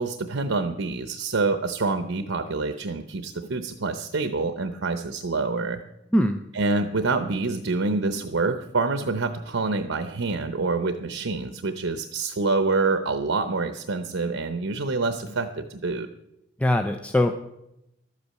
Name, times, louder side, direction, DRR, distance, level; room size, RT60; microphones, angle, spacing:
voice 1, 0.0-5.8 6.5-16.1, right 3 dB, 90° right, 9 dB, 0.8 m, -26 dB
voice 2, 16.6-17.5, left 1 dB, 5° left, 5 dB, 0.5 m, -22 dB
12.0 x 8.5 x 7.6 m, 0.85 s
head